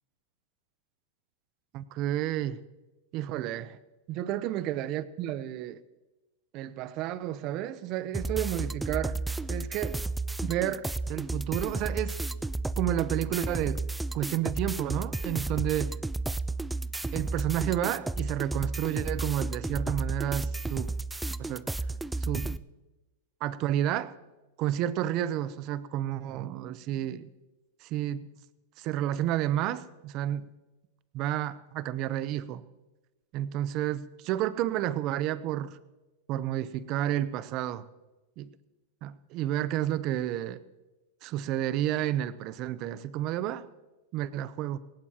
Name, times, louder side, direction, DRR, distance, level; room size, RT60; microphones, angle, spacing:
voice 1, 1.7-2.6 3.1-3.8 4.1-5.8 6.5-9.2 9.5-10.0 10.4-12.2 12.8-13.8 14.1-15.9 17.1-20.9 21.4-21.7 22.2-22.6 23.4-24.1 24.6-27.3 27.8-28.3 28.8-30.5 31.1-32.6 33.3-35.8 36.3-37.8 38.4-38.5 39.0-40.6 41.2-43.7 44.1-44.8, right 12 dB, 45° right, 16 dB, 0.7 m, -31 dB
sound 1, 8.1-22.6, right 2 dB, 5° right, 0.3 m, -33 dB
18.0 x 18.0 x 2.9 m, 1.1 s
hypercardioid pair, 120°, 0 cm